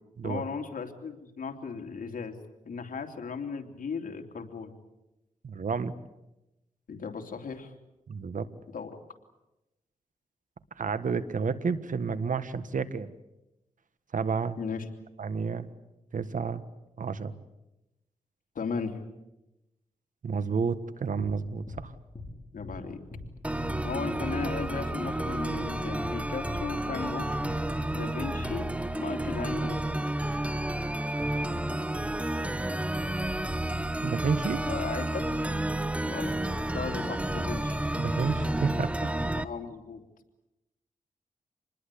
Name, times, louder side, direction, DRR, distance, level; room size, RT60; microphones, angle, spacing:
voice 1, 0.2-2.4 2.6-4.7 6.9-7.7 8.7-8.9 14.6-14.9 18.5-19.0 22.5-23.0 23.8-27.4 27.9-28.7 29.0-29.8 34.5-35.3 36.0-36.3 36.7-37.8 39.4-40.0, left 5 dB, 75° left, 4 dB, 3.0 m, -36 dB
voice 2, 5.4-5.9 8.1-8.5 10.8-13.1 14.1-14.6 15.2-15.7 16.1-16.6 17.0-17.3 20.2-21.9 34.0-34.6 38.0-38.9, right 5 dB, 65° right, 13 dB, 1.5 m, -30 dB
sound 1, 21.2-21.4 21.7-21.8 22.2-22.3 22.6-22.8 23.1-23.3 23.6-23.8 24.1-24.2 24.6-24.7 25.0-25.2 25.5-25.7 26.0-26.2 26.5-26.6 27.0-27.1 27.4-27.6 27.9-28.1 28.4-28.6, left 2 dB, 35° left, 6.1 m, -41 dB
sound 2, 23.4-39.4, right 1 dB, 10° right, 1.3 m, -31 dB
26.5 x 20.5 x 8.5 m, 0.95 s
cardioid pair, 70°, 14 cm